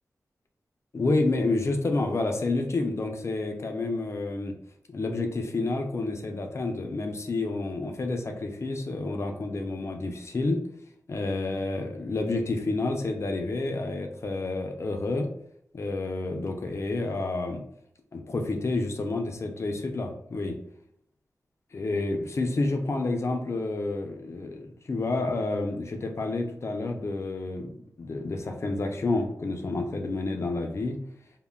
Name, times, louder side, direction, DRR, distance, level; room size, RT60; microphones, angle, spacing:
voice 1, 0.9-4.5 4.9-10.6 11.1-15.3 15.7-17.6 18.1-20.6 21.7-31.0, left 2 dB, 50° left, 4 dB, 0.4 m, -29 dB
3.5 x 2.2 x 2.2 m, 0.72 s
wide cardioid pair, 90°, 6 cm